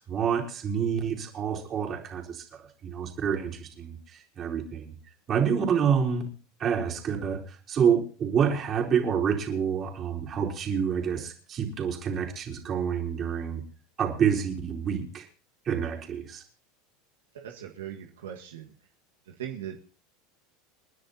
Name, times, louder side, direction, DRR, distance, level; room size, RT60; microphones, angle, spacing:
voice 1, 0.0-4.9 5.3-6.3 6.6-13.6 14.0-15.3 15.7-16.4, right 7 dB, 40° right, -1 dB, 4.1 m, -28 dB
voice 2, 17.3-18.7 19.2-19.8, right 10 dB, 85° right, 1 dB, 1.7 m, -39 dB
30.0 x 10.5 x 2.9 m, 0.39 s
hypercardioid pair, 100°, 0 cm